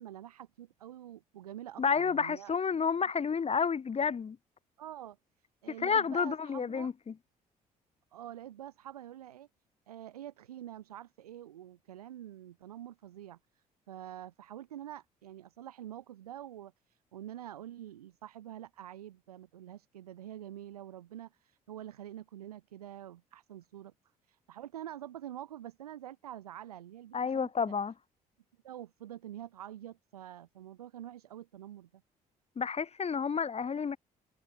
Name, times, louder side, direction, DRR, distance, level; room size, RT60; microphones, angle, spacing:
voice 1, 0.0-2.6 4.8-5.2 5.6-6.9 8.1-9.5 9.9-23.9 24.2-27.5 28.6-32.0, right 12 dB, 80° right, 4.2 m, -46 dB
voice 2, 1.8-4.4 5.8-7.1 27.1-27.9 32.6-34.0, left 6 dB, 35° left, 1.8 m, -30 dB
figure-of-eight pair, 50°, 19 cm